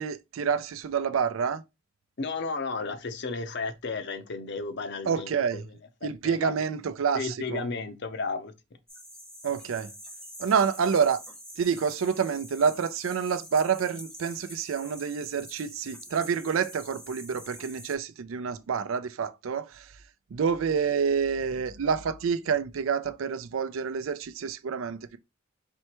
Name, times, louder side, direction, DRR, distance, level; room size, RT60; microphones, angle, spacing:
voice 1, 0.0-1.6 5.1-5.6 6.0-7.7 9.4-9.9 10.4-11.2 11.6-19.9 20.3-25.2, right 6 dB, 80° right, 0.4 m, -28 dB
voice 2, 2.2-5.6 6.0-6.5 7.1-8.5, left 4 dB, 60° left, 0.6 m, -33 dB
sound 1, 8.9-18.0, equal, 5° left, 0.7 m, -46 dB
4.4 x 3.3 x 2.9 m
head